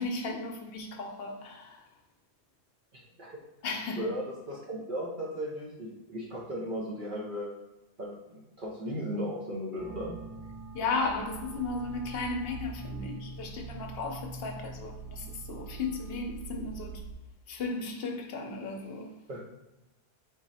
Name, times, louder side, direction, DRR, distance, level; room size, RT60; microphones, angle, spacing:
voice 1, 0.0-1.8 3.6-4.1 10.7-17.0 17.5-19.2, left 3 dB, 65° left, 0.8 m, -35 dB
voice 2, 2.9-3.4 4.0-7.5 8.0-10.2 19.3-19.5, equal, 50° right, 0.9 m, -36 dB
sound 1, 9.8-17.1, right 4 dB, 5° right, 0.4 m, -43 dB
4.0 x 3.1 x 4.0 m
omnidirectional pair, 1.1 m